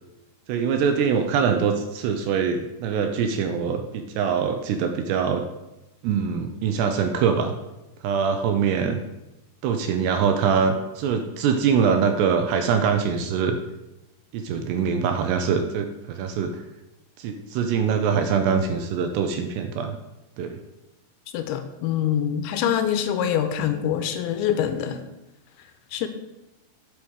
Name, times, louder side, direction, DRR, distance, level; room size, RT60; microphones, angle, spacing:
voice 1, 0.5-5.4 6.0-7.5 8.0-9.0 9.6-13.6 14.3-16.6 17.2-19.9 20.4-20.6, right 6 dB, 75° right, 6 dB, 2.6 m, -23 dB
voice 2, 21.3-25.0 25.9-26.1, left 9 dB, 80° left, 9 dB, 3.0 m, -25 dB
8.9 x 6.3 x 8.0 m, 0.97 s
omnidirectional pair, 5.4 m